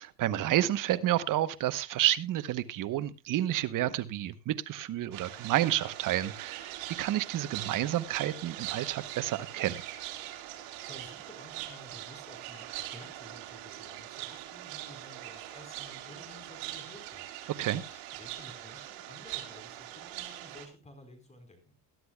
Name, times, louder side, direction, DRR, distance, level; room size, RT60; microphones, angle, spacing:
voice 1, 0.0-9.8 17.6-17.8, right 13 dB, 40° right, 1.0 m, -30 dB
sound 1, 5.1-20.7, right 14 dB, 85° right, 3.0 m, -42 dB
voice 2, 10.5-17.3 17.5-21.8, left 1 dB, 15° left, 4.3 m, -53 dB
21.5 x 11.5 x 2.3 m
cardioid pair, 140°, 47 cm